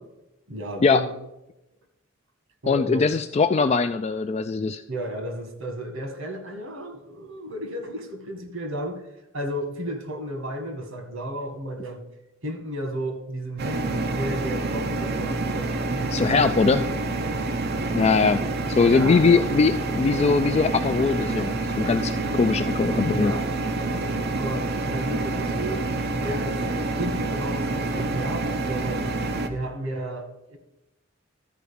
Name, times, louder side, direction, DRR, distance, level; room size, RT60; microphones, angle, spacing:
voice 1, 0.5-1.1 2.6-3.1 4.9-9.0 9.3-12.0 12.4-16.9 18.9-19.5 23.1-23.4 24.0-26.6 26.9-29.1 29.5-30.6, right 1 dB, 90° right, 6 dB, 1.8 m, -33 dB
voice 2, 2.7-4.8 16.1-16.8 17.9-23.3, left 4 dB, 30° left, 9 dB, 0.3 m, -21 dB
sound 1, 13.6-29.5, right 2 dB, 50° right, 0.9 m, -27 dB
13.0 x 4.7 x 7.0 m, 0.91 s
head